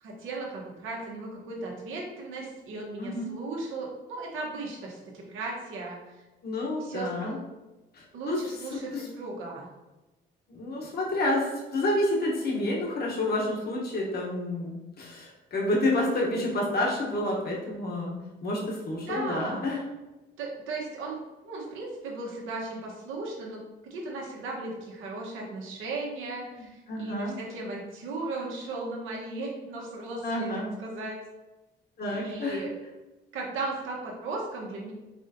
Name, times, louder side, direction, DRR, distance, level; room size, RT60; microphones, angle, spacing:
voice 1, 0.0-6.0 6.8-7.3 8.1-9.7 19.1-19.7 20.4-21.2 21.4-30.5 30.8-31.2 32.1-32.7 33.3-34.9, right 3 dB, 85° right, -2 dB, 1.2 m, -36 dB
voice 2, 3.0-3.3 6.4-7.4 7.9-8.4 8.9-9.1 10.5-18.1 18.4-19.8 26.9-27.3 30.2-30.7 32.0-32.6, left 1 dB, 55° left, -3 dB, 1.2 m, -29 dB
4.7 x 3.8 x 2.8 m, 1.1 s
cardioid pair, 90°, 20 cm